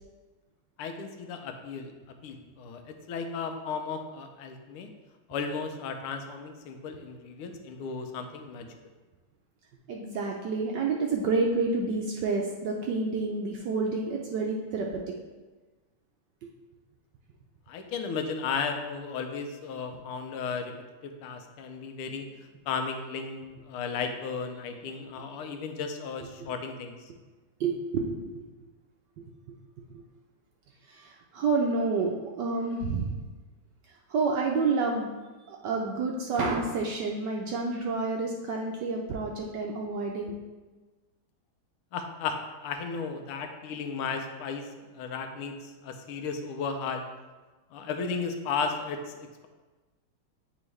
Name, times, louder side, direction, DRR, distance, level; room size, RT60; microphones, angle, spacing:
voice 1, 0.8-1.9 2.2-4.9 5.3-8.7 17.7-20.7 21.0-22.3 22.7-26.9 41.9-47.0 47.7-49.5, left 5 dB, 85° left, 5 dB, 1.5 m, -35 dB
voice 2, 9.9-14.9 16.4-16.5 25.3-25.6 26.4-26.5 27.6-28.4 29.2-29.3 30.9-33.2 34.1-35.1 35.5-40.3, right 3 dB, 75° right, 0 dB, 1.0 m, -29 dB
8.6 x 3.5 x 3.2 m, 1.3 s
omnidirectional pair, 2.4 m